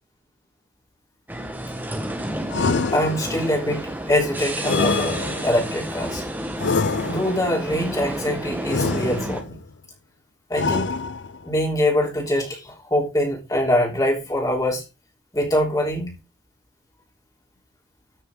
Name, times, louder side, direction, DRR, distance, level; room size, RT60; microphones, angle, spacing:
sound 1, 1.3-9.4, right 1 dB, 10° right, 1.3 m, -31 dB
sound 2, 2.5-3.6 4.6-5.7 6.6-7.5 8.7-9.6 10.5-11.5, left 4 dB, 70° left, 0.6 m, -25 dB
voice 1, 2.9-6.2 7.0-9.6 10.5-11.0 11.4-14.8 15.3-16.1, left 1 dB, 20° left, 0 dB, 3.4 m, -23 dB
13.5 x 6.6 x 3.7 m, 0.26 s
head